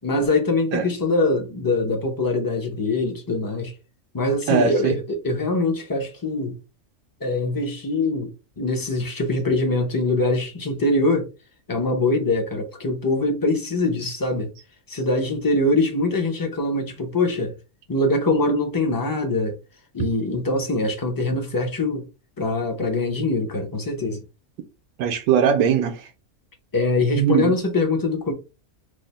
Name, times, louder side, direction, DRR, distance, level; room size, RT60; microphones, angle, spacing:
voice 1, 0.0-3.7 4.1-6.6 7.2-8.3 8.6-11.3 11.7-14.5 14.9-17.6 17.9-19.6 19.9-22.1 22.4-24.2 26.7-28.3, left 2 dB, 35° left, 0.3 m, -23 dB
voice 2, 4.5-5.0 25.0-26.1 27.2-27.5, right 7 dB, 90° right, 1.1 m, -20 dB
3.2 x 2.0 x 4.0 m
omnidirectional pair, 1.5 m